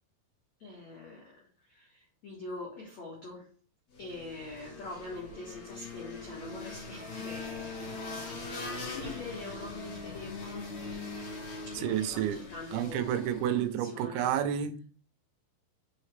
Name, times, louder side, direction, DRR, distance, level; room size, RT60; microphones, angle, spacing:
voice 1, 0.6-3.5 4.0-8.1 8.5-10.7 11.6-14.3, left 2 dB, 75° left, 1.6 m, -44 dB
sound 1, 3.9-13.7, left 3 dB, 50° left, 2.2 m, -41 dB
voice 2, 11.8-12.4 12.7-14.9, right 10 dB, 85° right, 3.5 m, -30 dB
6.6 x 6.1 x 3.3 m
omnidirectional pair, 6.0 m